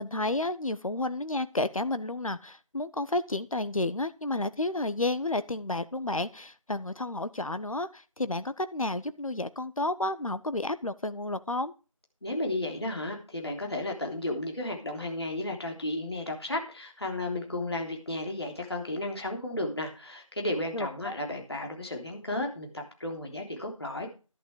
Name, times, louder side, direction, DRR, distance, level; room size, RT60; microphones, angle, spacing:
voice 1, 0.0-11.7 20.7-21.1, left 2 dB, 75° left, 13 dB, 1.1 m, -31 dB
voice 2, 12.2-24.1, left 1 dB, 50° left, 1 dB, 3.5 m, -33 dB
11.5 x 10.0 x 4.9 m, 0.33 s
figure-of-eight pair, 175°, 17 cm